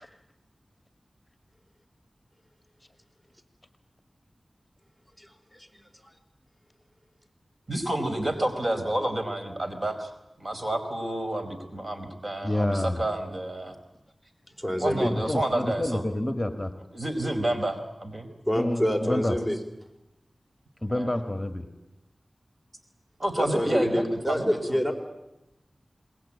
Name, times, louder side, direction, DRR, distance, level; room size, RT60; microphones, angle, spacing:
voice 1, 7.7-10.1 10.4-13.7 14.8-16.0 16.9-18.3 19.0-19.1 20.9-21.1 23.2-24.8, right 1 dB, 50° right, 6 dB, 4.6 m, -29 dB
voice 2, 12.4-13.0 15.0-16.7 18.5-19.4 20.8-21.6, left 1 dB, 15° left, 7 dB, 2.0 m, -28 dB
voice 3, 14.6-15.1 18.5-19.6 23.4-24.9, equal, 15° right, 5 dB, 4.4 m, -26 dB
28.0 x 21.0 x 8.6 m, 0.91 s
wide cardioid pair, 55°, 0 cm